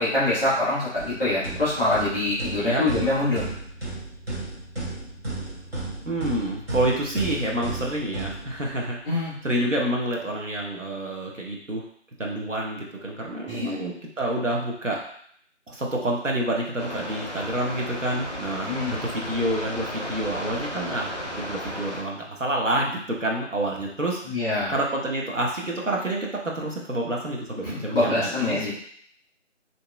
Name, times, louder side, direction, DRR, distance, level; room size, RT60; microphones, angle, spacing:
voice 1, 0.0-3.4 9.0-9.3 13.5-13.7 18.6-19.0 24.2-24.7 27.6-28.7, left 2 dB, ahead, -11 dB, 1.2 m, -25 dB
sound 1, 1.0-9.0, right 2 dB, 55° right, 1.3 m, -34 dB
voice 2, 6.1-11.8 12.2-15.0 15.7-18.7 19.0-24.2 24.7-28.7, right 1 dB, 85° right, -1 dB, 1.0 m, -28 dB
sound 2, 16.8-22.0, left 1 dB, 35° left, 0.5 m, -34 dB
3.8 x 2.8 x 2.3 m, 0.63 s
figure-of-eight pair, 160°, 37 cm